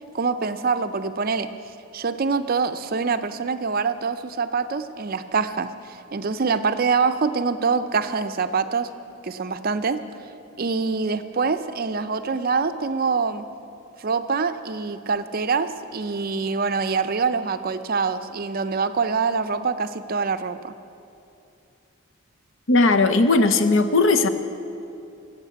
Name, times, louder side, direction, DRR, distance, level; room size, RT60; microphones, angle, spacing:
voice 1, 0.1-1.5 1.9-8.9 9.2-10.0 10.6-13.4 14.0-20.7, right 5 dB, 45° right, 11 dB, 0.5 m, -25 dB
voice 2, 22.7-24.3, left 3 dB, 65° left, 9 dB, 0.8 m, -17 dB
14.0 x 8.1 x 8.1 m, 2.7 s
head